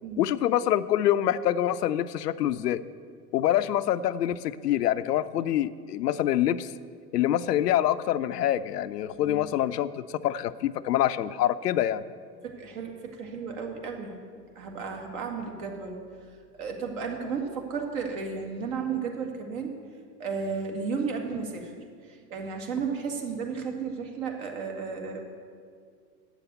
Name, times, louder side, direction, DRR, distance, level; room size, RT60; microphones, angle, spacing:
voice 1, 0.2-2.8 3.3-6.7 7.1-12.0, left 12 dB, 85° left, 13 dB, 0.5 m, -26 dB
voice 2, 9.2-9.5 12.4-14.1 14.6-16.0 16.3-19.8 20.2-21.7 22.0-25.2, right 5 dB, 55° right, 2 dB, 2.0 m, -33 dB
8.2 x 7.1 x 7.9 m, 2.1 s
hypercardioid pair, 100°, 47 cm